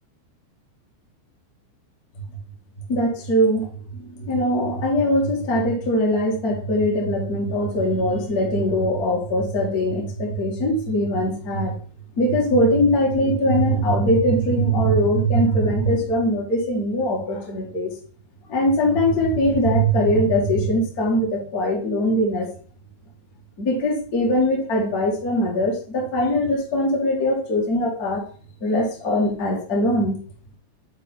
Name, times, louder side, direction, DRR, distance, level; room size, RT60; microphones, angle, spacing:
voice 1, 2.9-3.7 3.9-11.8 12.2-17.9 18.5-22.5 23.6-28.2 28.6-30.2, equal, 75° left, -3 dB, 0.8 m, -21 dB
7.2 x 4.2 x 3.9 m, 0.41 s
omnidirectional pair, 5.2 m